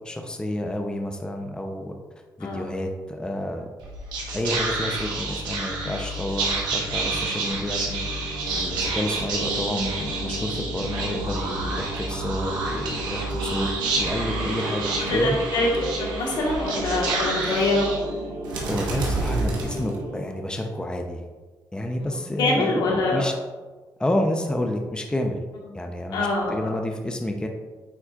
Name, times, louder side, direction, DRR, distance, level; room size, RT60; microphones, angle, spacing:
voice 1, 0.0-1.9 2.4-3.7 4.3-8.2 8.6-15.4 18.7-21.3 21.7-23.3 24.0-25.4 25.7-27.5, left 1 dB, 10° left, 3 dB, 0.7 m, -29 dB
voice 2, 2.4-2.7 15.1-15.7 16.0-17.9 22.0-23.2 26.1-26.8, left 2 dB, 85° left, -2 dB, 1.5 m, -25 dB
Whispering, 3.8-20.4, right 2 dB, 85° right, 1.3 m, -28 dB
9.0 x 4.3 x 2.4 m, 1.3 s
cardioid pair, 70°, 7 cm